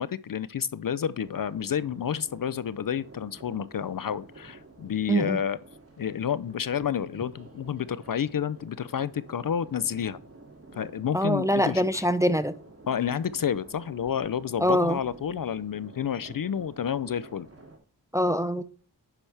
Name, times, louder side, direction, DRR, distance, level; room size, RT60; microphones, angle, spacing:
voice 1, 0.0-5.6 6.0-10.2 10.7-12.0 12.9-17.5, left 8 dB, 50° left, 0.5 m, -30 dB
sound 1, 1.1-17.8, right 2 dB, 35° right, 2.3 m, -49 dB
voice 2, 5.1-5.4 11.1-12.5 14.6-15.0 18.1-18.6, equal, 5° right, 0.5 m, -24 dB
9.9 x 6.0 x 3.3 m
wide cardioid pair, 60°, 43 cm